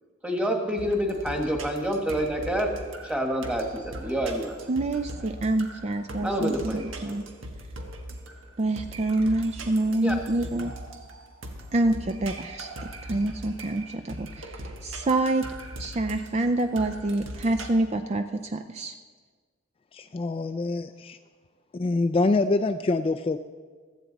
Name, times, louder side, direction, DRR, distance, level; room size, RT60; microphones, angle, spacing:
voice 1, 0.2-2.7 3.0-4.6 6.2-6.9 10.0-10.1, equal, 5° right, 2 dB, 1.5 m, -27 dB
sound 1, 0.8-17.7, right 1 dB, 85° right, 1.4 m, -40 dB
voice 2, 4.7-7.2 8.6-10.8 11.7-15.5 15.8-18.9, right 2 dB, 35° right, 8 dB, 0.4 m, -27 dB
voice 3, 19.9-21.2 21.8-23.4, left 3 dB, 30° left, 9 dB, 0.3 m, -25 dB
16.0 x 13.5 x 4.0 m, 1.5 s
head